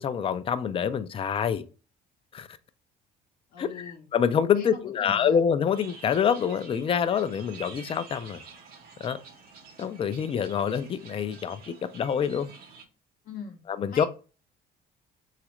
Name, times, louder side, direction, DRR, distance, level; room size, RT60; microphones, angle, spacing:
voice 1, 0.0-1.6 2.3-2.5 3.6-8.4 9.0-9.2 9.8-12.5 13.8-14.1, left 7 dB, 35° left, 0.4 m, -26 dB
voice 2, 3.5-4.1 4.5-5.5 13.2-14.1, left 6 dB, 60° left, 0.7 m, -42 dB
sound 1, 5.7-12.8, right 5 dB, 60° right, 0.8 m, -48 dB
4.1 x 2.4 x 2.9 m
cardioid pair, 110°, 17 cm